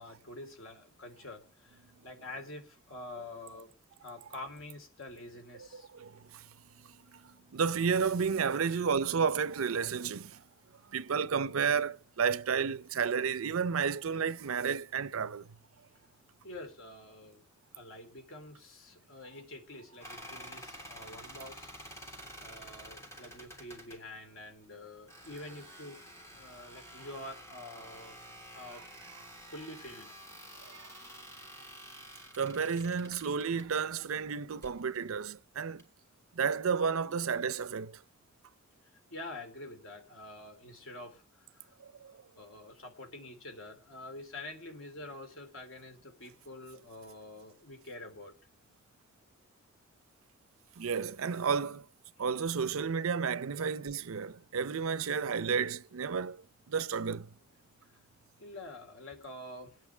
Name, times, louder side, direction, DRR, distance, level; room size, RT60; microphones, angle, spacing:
voice 1, 0.0-3.7 4.0-5.9 8.6-8.8 16.4-17.4 17.7-21.7 22.4-28.2 28.5-28.9 29.5-30.2 37.1-37.3 38.8-41.7 42.1-48.4 57.8-58.0 58.4-59.8, left 2 dB, 70° left, 3.2 m, -47 dB
voice 2, 5.7-6.5 6.8-10.4 10.9-15.6 29.2-29.3 30.6-30.9 32.3-35.8 36.3-38.0 41.8-42.2 50.8-51.9 52.2-57.3, right 6 dB, 90° right, 0.6 m, -32 dB
sound 1, 20.0-24.0 25.1-33.8 34.5-34.8 35.8-35.9, equal, 15° left, 3.2 m, -50 dB
24.0 x 9.5 x 3.4 m
head